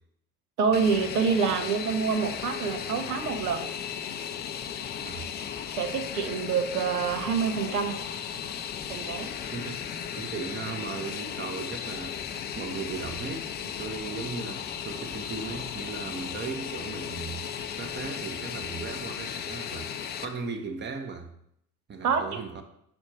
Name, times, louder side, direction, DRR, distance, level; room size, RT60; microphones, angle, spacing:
voice 1, 0.6-3.7 5.8-8.0 8.9-9.3 22.0-22.4, right 6 dB, 80° right, 0.8 m, -27 dB
Fixed-wing aircraft airplane, 0.7-20.2, left 8 dB, 25° left, 0.4 m, -36 dB
voice 2, 9.5-9.8 10.1-12.3 12.6-17.4 17.8-19.9 20.2-21.3 21.9-22.6, right 4 dB, 25° right, 0.8 m, -37 dB
5.1 x 4.3 x 4.3 m
figure-of-eight pair, 65°, 45 cm